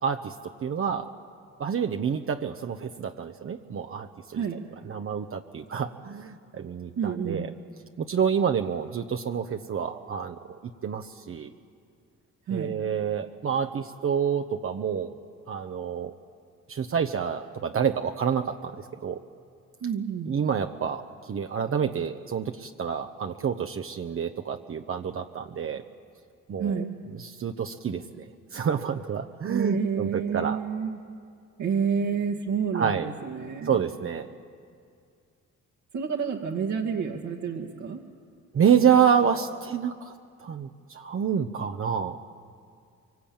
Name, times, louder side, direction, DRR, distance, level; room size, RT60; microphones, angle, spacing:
voice 1, 0.0-0.3 0.6-1.1 1.6-4.6 4.8-7.5 8.0-10.4 10.8-11.5 12.5-15.1 15.5-16.1 16.7-19.2 20.3-21.0 21.3-25.8 26.5-28.3 28.5-30.6 32.7-33.1 33.6-34.3 38.5-40.1 40.4-42.2, right 7 dB, 45° right, 5 dB, 1.0 m, -28 dB
voice 2, 7.0-7.4 12.5-12.7 19.8-20.4 26.6-27.0 29.4-31.0 31.6-33.8 35.9-38.0, right 6 dB, 70° right, -1 dB, 2.1 m, -29 dB
23.5 x 23.5 x 8.8 m, 2.3 s
cardioid pair, 90°, 30 cm